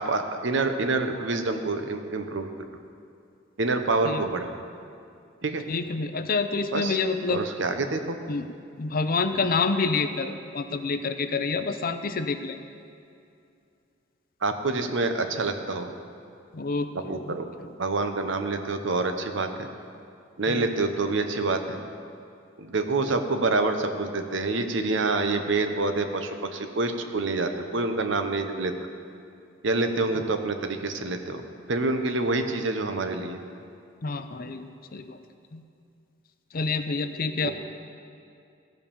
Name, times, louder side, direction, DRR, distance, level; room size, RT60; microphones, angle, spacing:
voice 1, 0.0-2.5 3.6-4.6 5.4-5.6 6.7-7.0 7.3-8.2 14.4-15.9 16.9-17.5 17.8-19.7 20.4-21.8 22.6-28.7 29.6-33.4 37.4-37.5, right 3 dB, 65° right, 7 dB, 0.9 m, -27 dB
voice 2, 5.7-7.4 8.3-8.5 8.8-12.6 16.5-17.7 20.5-20.6 34.0-34.7 34.9-35.2 35.5-35.6 36.5-37.5, left 4 dB, 50° left, 9 dB, 0.6 m, -28 dB
15.5 x 5.3 x 7.0 m, 2.5 s
head